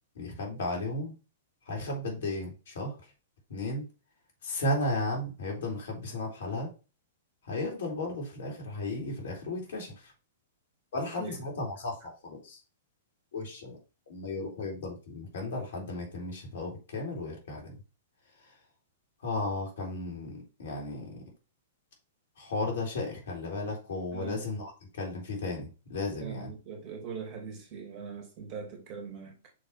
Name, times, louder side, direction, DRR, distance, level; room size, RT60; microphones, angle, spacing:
voice 1, 0.1-1.1 1.7-3.0 3.5-3.9 4.4-6.7 7.4-10.1 10.9-12.6 13.3-13.8 14.1-17.7 19.2-21.2 22.4-26.5, left 2 dB, 65° left, 2.7 m, -34 dB
voice 2, 24.1-24.4 26.2-29.5, right 6 dB, 40° right, 2.2 m, -41 dB
6.4 x 3.4 x 4.3 m
figure-of-eight pair, 105°, 0 cm